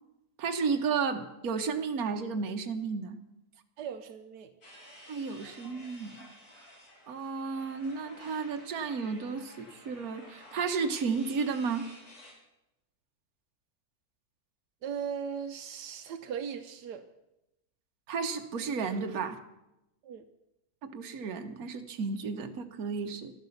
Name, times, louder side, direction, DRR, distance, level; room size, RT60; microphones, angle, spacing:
voice 1, 0.4-3.2 5.1-6.2 7.1-11.9 18.1-19.4 20.8-23.3, right 5 dB, 65° right, 6 dB, 1.5 m, -33 dB
voice 2, 3.8-4.5 14.8-17.1 20.0-20.2, right 7 dB, 85° right, 7 dB, 1.4 m, -38 dB
sound 1, 4.6-12.3, left 1 dB, 65° left, 3.4 m, -53 dB
12.5 x 12.0 x 7.1 m, 0.90 s
omnidirectional pair, 1.7 m